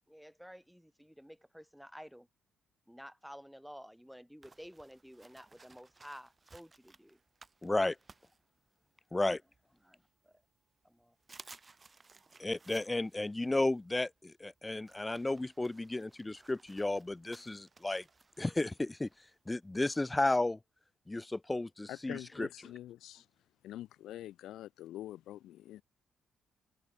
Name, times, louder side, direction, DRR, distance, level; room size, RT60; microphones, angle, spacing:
voice 1, 0.1-2.3 2.9-7.2 9.8-10.4 10.8-11.2, equal, ahead, 5.5 m, -52 dB
sound 1, 4.4-9.1 9.5-10.4 10.8-10.9 11.2-20.0, right 3 dB, 25° right, 5.0 m, -60 dB
voice 2, 7.6-8.0 9.1-9.4 12.4-18.0 18.4-19.1 19.5-20.6 21.1-22.5, left 2 dB, 15° left, 0.3 m, -33 dB
voice 3, 21.9-23.3 23.6-25.8, left 13 dB, 80° left, 4.7 m, -45 dB
cardioid pair, 90°, 0 cm